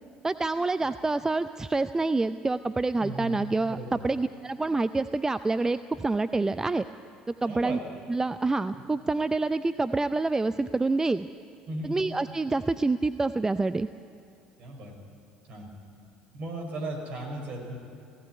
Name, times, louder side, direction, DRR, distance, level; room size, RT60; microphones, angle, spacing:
voice 1, 0.2-3.8 4.0-6.8 7.4-7.8 8.1-11.3 11.8-13.9, right 3 dB, 15° right, 12 dB, 0.5 m, -27 dB
voice 2, 3.0-3.4 3.7-4.0 7.5-7.8 11.7-12.0 14.6-14.9 15.5-15.7 16.3-17.8, right 1 dB, 50° right, 1 dB, 5.5 m, -36 dB
17.0 x 17.0 x 9.5 m, 2.5 s
hypercardioid pair, 60°, 4 cm